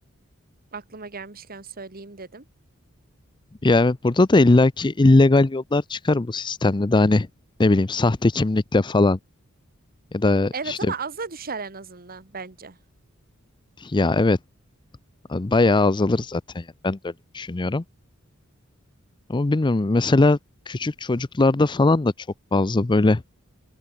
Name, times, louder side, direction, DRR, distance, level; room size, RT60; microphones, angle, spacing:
voice 1, 0.7-2.5 10.5-12.8, right 5 dB, 45° right, 1.8 m, -35 dB
voice 2, 3.6-7.3 7.6-9.2 10.1-10.8 13.8-14.4 15.3-17.8 19.3-20.4 20.7-22.1 22.5-23.2, left 2 dB, 20° left, 0.5 m, -20 dB
open air
head